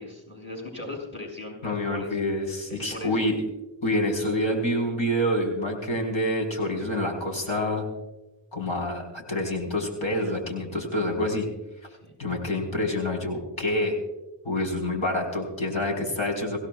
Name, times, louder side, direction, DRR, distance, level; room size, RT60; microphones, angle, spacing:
voice 1, 0.0-2.2 2.7-3.2 11.9-12.2, left 1 dB, 25° left, -1 dB, 6.3 m, -38 dB
voice 2, 1.6-3.4 3.8-7.9 8.5-11.5 12.2-13.9 14.4-16.6, left 1 dB, 80° left, 0 dB, 4.4 m, -27 dB
24.5 x 16.5 x 2.3 m, 1.0 s
wide cardioid pair, 70°, 47 cm